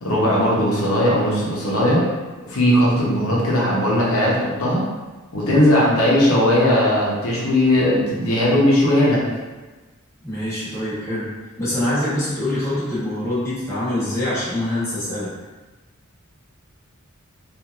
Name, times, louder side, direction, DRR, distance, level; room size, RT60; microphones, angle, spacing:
voice 1, 0.0-2.1 2.4-4.8 5.3-9.2, left 1 dB, 80° left, -6 dB, 0.7 m, -18 dB
voice 2, 10.2-11.3 11.6-15.3, left 1 dB, 15° left, -11 dB, 1.0 m, -24 dB
3.0 x 2.4 x 2.4 m, 1.2 s
head